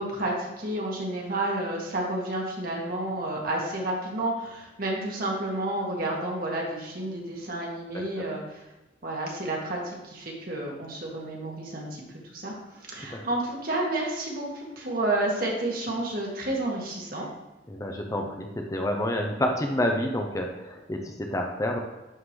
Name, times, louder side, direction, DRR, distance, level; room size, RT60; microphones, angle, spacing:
voice 1, 0.0-8.6 9.0-12.0 12.3-17.3, right 1 dB, 55° right, -2 dB, 1.8 m, -30 dB
voice 2, 17.7-21.8, left 1 dB, 20° left, 3 dB, 0.6 m, -28 dB
11.0 x 3.9 x 3.2 m, 1.1 s
head